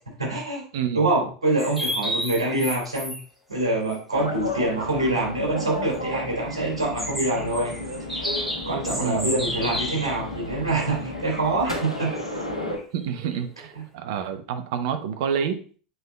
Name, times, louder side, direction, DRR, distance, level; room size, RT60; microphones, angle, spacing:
voice 1, 0.2-0.6 0.9-3.1 3.5-7.7 8.1-12.1 13.7-13.8, right 2 dB, 75° right, -3 dB, 3.0 m, -25 dB
sound 1, 1.6-3.2 3.5-3.6 3.9-4.0 4.4-4.5 5.9-10.2 11.1-13.8, equal, ahead, 1.8 m, -32 dB
sound 2, 4.1-12.8, left 2 dB, 90° left, 1.1 m, -33 dB
voice 2, 8.9-9.3 12.9-15.6, right 8 dB, 55° right, 7 dB, 0.8 m, -28 dB
7.9 x 5.4 x 2.3 m, 0.40 s
figure-of-eight pair, 75°, 3 cm